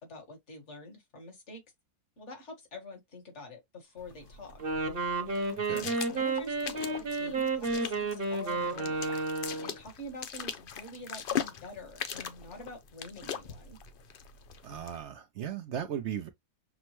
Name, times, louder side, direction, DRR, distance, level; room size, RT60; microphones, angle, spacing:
voice 1, 0.0-1.6 2.2-4.6 5.7-13.8, left 1 dB, 45° left, 1.8 m, -47 dB
sound 1, 4.0-15.0, left 8 dB, 85° left, 0.4 m, -41 dB
Wind instrument woodwind instrument, 4.5-9.8, right 3 dB, 40° right, 1.1 m, -31 dB
voice 2, 14.6-16.3, right 9 dB, 65° right, 0.7 m, -37 dB
6.1 x 2.1 x 3.0 m
omnidirectional pair, 1.7 m